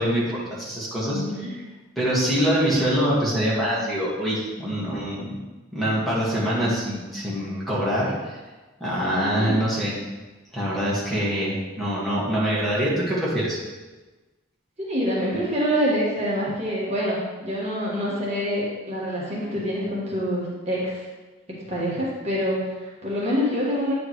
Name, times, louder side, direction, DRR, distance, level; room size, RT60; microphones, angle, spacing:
voice 1, 0.0-1.2 1.9-5.3 5.7-8.4 8.8-9.9 10.5-13.6, equal, ahead, -8 dB, 1.7 m, -24 dB
voice 2, 1.1-1.5 9.1-9.5 14.8-21.0 21.7-23.9, equal, 35° right, -6 dB, 1.6 m, -26 dB
9.5 x 5.0 x 3.1 m, 1.2 s
head